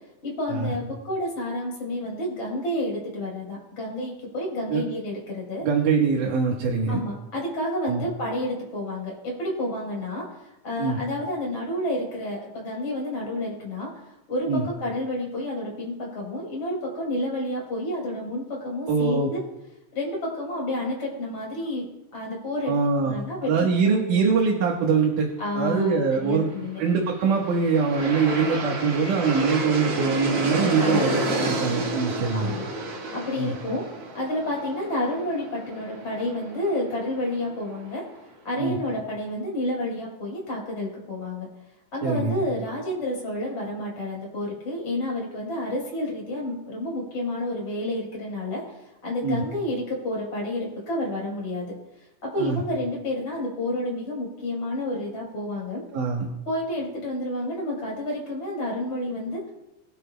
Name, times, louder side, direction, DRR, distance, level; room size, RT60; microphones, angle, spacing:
voice 1, 0.2-5.7 6.9-19.4 19.9-21.9 22.1-24.3 25.4-26.8 30.8-31.1 32.3-32.7 33.1-33.9 34.2-38.0 38.5-41.5 41.9-51.7 52.2-55.8 56.5-59.5, left 1 dB, 50° left, -2 dB, 5.4 m, -30 dB
voice 2, 5.6-7.0 7.9-8.0 10.8-11.0 14.5-14.7 18.9-19.3 22.6-23.1 23.4-25.3 25.5-26.5 26.8-32.6 33.4-33.6 38.6-38.8 42.0-42.4 49.2-49.4 52.4-52.6 55.9-56.3, right 5 dB, 80° right, -1 dB, 2.9 m, -23 dB
Aircraft, 26.9-38.0, right 2 dB, 50° right, 2.7 m, -31 dB
22.0 x 10.5 x 2.2 m, 0.95 s
omnidirectional pair, 3.6 m